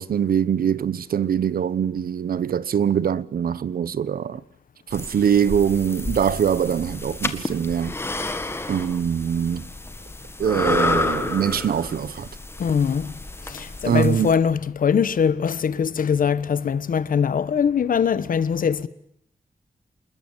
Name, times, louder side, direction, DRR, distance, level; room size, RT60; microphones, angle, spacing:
voice 1, 0.0-4.4 4.9-8.0 8.7-9.7 10.4-12.3 13.8-14.3, right 8 dB, 90° right, 1.0 m, -23 dB
sound 1, 4.9-14.3, left 2 dB, 15° left, 1.7 m, -30 dB
voice 2, 12.6-13.1 13.4-18.9, left 7 dB, 70° left, 1.2 m, -22 dB
27.0 x 21.0 x 9.1 m
wide cardioid pair, 170°, 15 cm